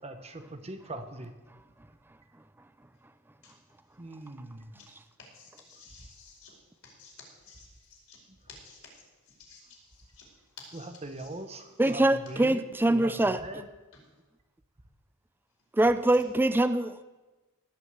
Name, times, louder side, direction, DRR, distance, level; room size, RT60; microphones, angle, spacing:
voice 1, 0.0-1.3 4.0-4.6 10.7-12.0 12.3-12.6 12.9-13.6, right 2 dB, 30° right, 8 dB, 0.9 m, -41 dB
voice 2, 5.3-6.5 6.8-7.7 8.1-8.2 8.5-8.8 9.4-9.6 10.1-10.2 10.6-11.3, left 4 dB, 70° left, -2 dB, 5.0 m, -52 dB
voice 3, 11.8-13.4 15.7-17.0, right 1 dB, 10° right, 12 dB, 0.4 m, -24 dB
18.0 x 6.4 x 8.0 m, 1.2 s
head